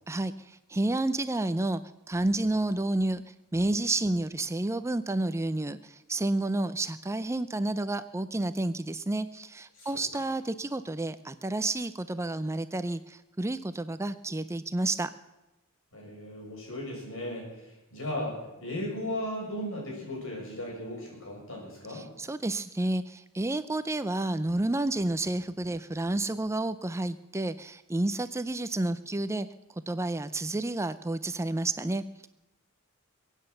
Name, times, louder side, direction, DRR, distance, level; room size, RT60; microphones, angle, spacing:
voice 1, 0.1-3.2 3.5-15.1 21.9-29.5 29.9-32.3, right 2 dB, 15° right, 12 dB, 0.4 m, -30 dB
voice 2, 9.8-10.2 15.9-22.1, left 1 dB, 65° left, -1 dB, 6.9 m, -36 dB
23.0 x 9.1 x 6.6 m, 0.98 s
head